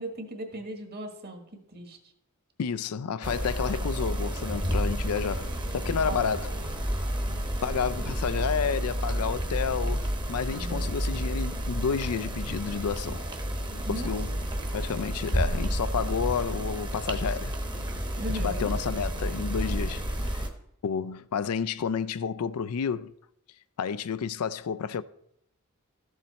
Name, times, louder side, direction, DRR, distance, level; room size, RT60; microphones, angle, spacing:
voice 1, 0.0-2.0 6.0-6.3 10.5-10.9 13.8-14.5 18.2-18.7, right 1 dB, 45° right, 1.6 m, -38 dB
voice 2, 2.6-6.8 7.6-13.3 13.9-14.4 14.7-17.5 18.4-20.4 20.8-23.1 23.8-25.0, left 6 dB, 80° left, 0.4 m, -30 dB
sound 1, 3.2-20.5, equal, 20° right, 1.0 m, -30 dB
13.0 x 7.2 x 4.1 m
head